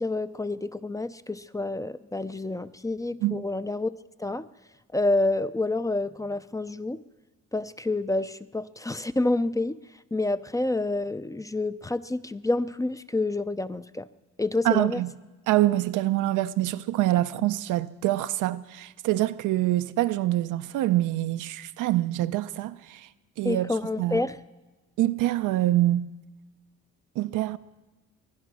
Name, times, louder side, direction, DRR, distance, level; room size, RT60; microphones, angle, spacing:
voice 1, 0.0-3.9 4.2-4.5 4.9-7.0 7.5-9.8 10.1-14.1 14.4-15.0 23.4-24.4, left 2 dB, 10° left, 0.4 m, -28 dB
voice 2, 14.6-15.1 15.5-23.1 23.4-23.7 24.0-24.2 25.0-26.1 27.2-27.6, right 15 dB, 90° right, 0.6 m, -25 dB
22.5 x 10.0 x 6.1 m
cardioid pair, 90°, 30 cm